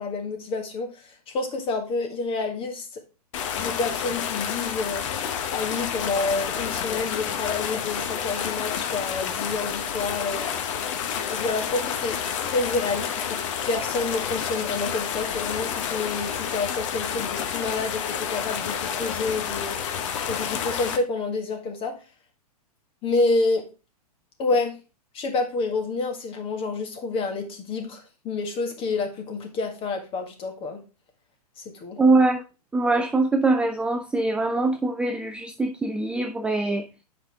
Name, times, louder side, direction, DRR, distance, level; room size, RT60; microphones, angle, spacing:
voice 1, 0.0-3.0 3.6-5.1 5.5-10.7 11.3-13.4 13.7-22.0 23.0-23.7 24.4-24.8 25.1-30.8 31.6-32.0, left 3 dB, 25° left, 1.7 m, -28 dB
sound 1, 3.3-21.0, left 8 dB, 50° left, 1.0 m, -29 dB
voice 2, 32.0-32.4 32.7-36.9, right 2 dB, 5° right, 0.4 m, -23 dB
7.8 x 5.1 x 3.5 m
hypercardioid pair, 115°, 20 cm